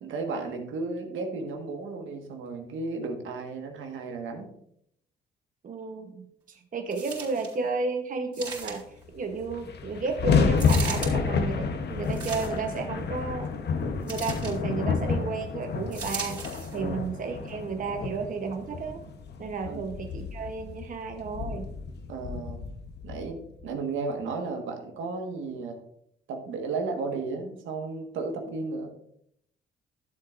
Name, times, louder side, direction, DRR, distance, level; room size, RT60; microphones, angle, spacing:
voice 1, 0.0-4.5 16.7-17.0 19.7-20.0 22.1-22.6 23.0-25.8 26.3-28.9, right 3 dB, 80° right, 3 dB, 1.6 m, -34 dB
voice 2, 5.6-8.8 9.1-13.5 13.9-16.4 16.7-19.0 19.4-21.7, right 4 dB, 40° right, 4 dB, 1.0 m, -33 dB
sound 1, 6.9-7.6 8.3-9.0 10.6-11.1 12.0-12.8 14.1-14.6 15.9-16.8 17.5-17.6, right 4 dB, 20° right, 3.8 m, -37 dB
sound 2, 9.0-9.1 9.3-23.7, left 5 dB, 55° left, 1.0 m, -30 dB
12.0 x 7.7 x 2.5 m, 0.70 s
cardioid pair, 90°, 20 cm